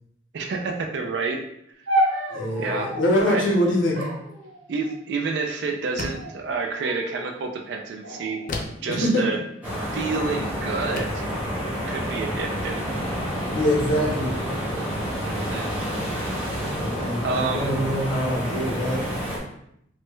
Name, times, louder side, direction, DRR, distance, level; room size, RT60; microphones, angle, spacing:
voice 1, 0.3-1.4 2.6-2.9 3.3-3.4 4.7-8.4 8.8-9.4 9.9-11.2 11.9-12.8 15.2-15.8 17.2-17.8, right 4 dB, 60° right, 3 dB, 0.4 m, -29 dB
sound 1, 1.9-3.1 3.9-5.1 5.9-6.4 6.8-7.3 8.0-9.3 10.1-10.5, right 1 dB, 85° right, 0.7 m, -30 dB
voice 2, 2.3-4.0 8.9-9.2 13.5-14.3 16.8-19.0, equal, 85° left, -3 dB, 0.8 m, -24 dB
sound 2, 6.0-6.4 8.5-8.9 10.3-10.4 11.0-11.3, left 2 dB, 45° left, 0.3 m, -32 dB
sound 3, 9.6-19.4, equal, 10° right, 0.8 m, -29 dB
3.0 x 2.2 x 3.0 m, 0.75 s
head